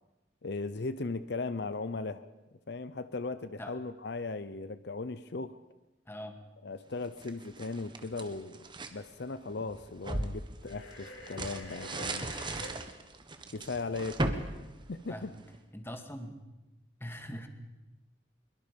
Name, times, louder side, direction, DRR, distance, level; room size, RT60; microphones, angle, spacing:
voice 1, 0.4-2.3 2.7-5.6 6.6-12.3 13.5-14.5 14.9-15.3, left 3 dB, 65° left, 13 dB, 0.7 m, -38 dB
voice 2, 6.1-6.4 15.1-15.4 15.7-16.4 17.0-17.5, equal, 15° left, 6 dB, 1.9 m, -42 dB
sound 1, 7.0-9.0 9.5-15.6, right 2 dB, 25° right, 1.4 m, -38 dB
sound 2, 10.6-12.7, left 2 dB, 90° left, 6.3 m, -46 dB
23.0 x 22.5 x 5.3 m, 1.0 s
head